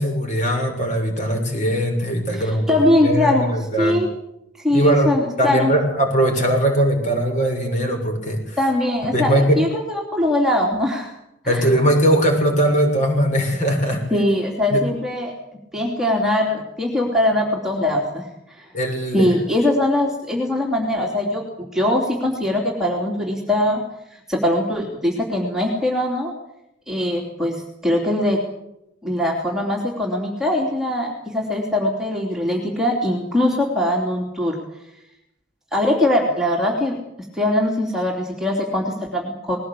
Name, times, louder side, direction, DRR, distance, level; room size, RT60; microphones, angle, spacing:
voice 1, 0.0-2.8 3.0-4.0 4.7-5.1 5.4-8.6 9.1-9.6 11.4-14.0 14.7-14.8 18.7-19.3, right 1 dB, 40° left, 2 dB, 6.8 m, -20 dB
voice 2, 2.3-3.5 3.8-4.1 4.6-5.7 8.6-11.1 11.4-11.7 14.1-15.3 15.7-18.7 19.1-23.8 24.1-26.3 26.9-28.4 29.0-34.5 35.7-37.0 37.3-39.6, left 1 dB, 5° right, -2 dB, 3.1 m, -21 dB
20.5 x 18.0 x 8.5 m, 0.84 s
head